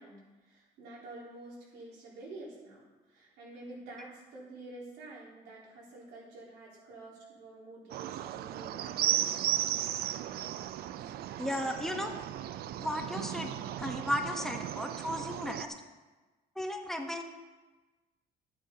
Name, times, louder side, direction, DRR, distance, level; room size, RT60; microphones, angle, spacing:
voice 1, 0.0-9.5 15.8-15.9 17.0-17.1, right 2 dB, 85° right, -5 dB, 4.0 m, -49 dB
sound 1, 7.9-15.7, right 12 dB, 70° right, 0.5 m, -35 dB
voice 2, 11.4-12.1 12.8-13.5 13.8-15.7 16.6-17.2, left 1 dB, ahead, 4 dB, 1.1 m, -35 dB
12.5 x 8.8 x 3.9 m, 1.2 s
cardioid pair, 110°, 17 cm